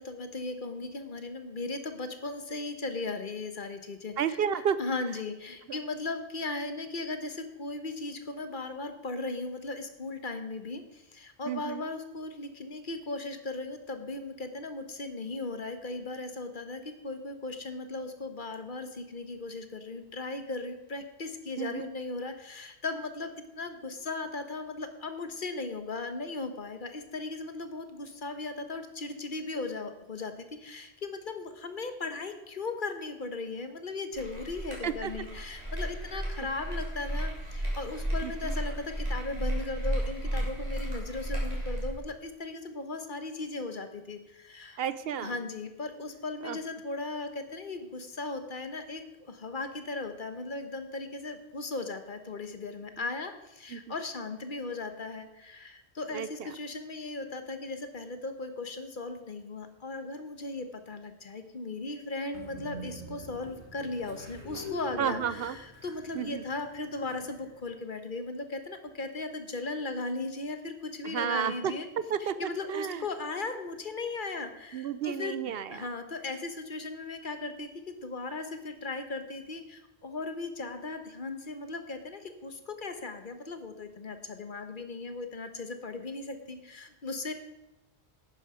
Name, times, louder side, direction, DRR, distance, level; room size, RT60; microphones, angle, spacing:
voice 1, 0.0-4.1 4.8-44.8 45.2-65.6 65.8-71.9 72.4-75.3 75.7-87.3, left 3 dB, 50° left, 8 dB, 1.2 m, -37 dB
voice 2, 4.2-4.8 5.7-5.8 11.4-11.9 21.6-21.9 34.8-35.1 38.2-38.5 44.8-45.4 46.4-46.6 53.0-53.1 53.7-53.9 56.1-56.6 65.0-65.6 66.1-66.4 71.0-71.7 72.1-73.1 74.7-75.9, right 8 dB, 65° right, 14 dB, 0.8 m, -32 dB
sound 1, 34.1-42.0, right 1 dB, 35° right, 3.8 m, -33 dB
Train, 62.3-67.6, right 1 dB, 90° right, 2.8 m, -45 dB
11.5 x 9.4 x 5.0 m, 0.95 s
omnidirectional pair, 1.1 m